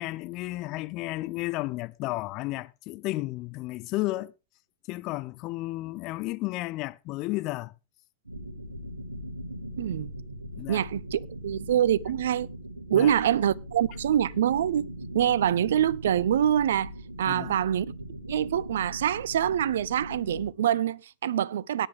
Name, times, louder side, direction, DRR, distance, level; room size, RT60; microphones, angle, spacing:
voice 1, 0.0-4.3 4.9-7.7 10.6-10.8 12.9-13.1 17.3-17.6, left 19 dB, 40° left, 0.7 m, -33 dB
sound 1, 8.3-20.5, equal, 85° right, 1.7 m, -40 dB
voice 2, 9.8-10.1 10.7-12.5 12.9-14.9 15.1-16.9 17.2-17.9 18.3-21.9, right 10 dB, 60° right, 0.5 m, -25 dB
17.5 x 10.0 x 3.5 m
figure-of-eight pair, 90°, 0 cm